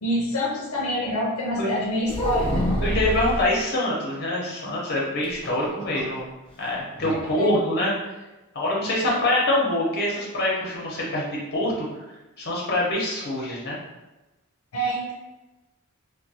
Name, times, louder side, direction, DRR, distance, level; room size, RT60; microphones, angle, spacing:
voice 1, 0.0-2.8 7.4-7.5 9.0-9.1 14.7-15.1, equal, 75° left, -4 dB, 0.6 m, -26 dB
sound 1, 2.1-3.5 5.2-6.2 6.5-6.6 7.0-7.2, equal, 25° left, 0.6 m, -27 dB
voice 2, 2.8-6.3 6.6-7.9 8.5-12.0 12.4-13.8, left 1 dB, 50° left, -4 dB, 0.9 m, -25 dB
3.1 x 2.2 x 2.8 m, 1.1 s
head